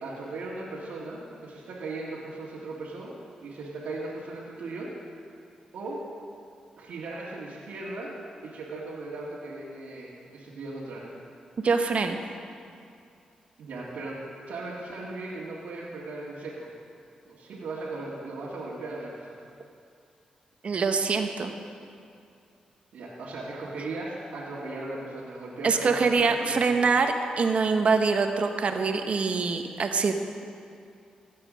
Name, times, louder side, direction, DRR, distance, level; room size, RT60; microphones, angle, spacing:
voice 1, 0.0-3.1 3.4-4.9 5.7-6.0 6.8-8.1 8.4-11.1 13.6-14.2 14.5-16.7 17.2-19.3 22.9-26.7, right 2 dB, 85° right, -7 dB, 1.8 m, -37 dB
voice 2, 11.6-12.2 20.6-21.5 25.6-30.1, right 4 dB, 55° right, 6 dB, 1.1 m, -24 dB
15.0 x 7.6 x 6.3 m, 2.4 s
cardioid pair, 80°, 2 cm